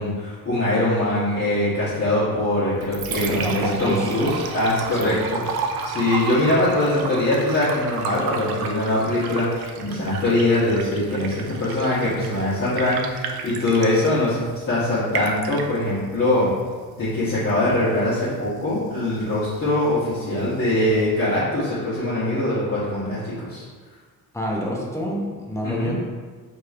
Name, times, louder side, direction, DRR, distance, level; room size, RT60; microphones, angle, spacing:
voice 1, 0.0-5.4 5.8-16.5 17.0-23.6 25.6-25.9, left 1 dB, 35° left, -12 dB, 1.1 m, -22 dB
Liquid, 2.6-21.6, right 5 dB, 90° right, 0.5 m, -34 dB
voice 2, 3.3-4.1 5.0-5.2 24.3-25.9, equal, 10° left, -3 dB, 0.5 m, -27 dB
4.8 x 3.0 x 2.4 m, 1.5 s
wide cardioid pair, 150°, 36 cm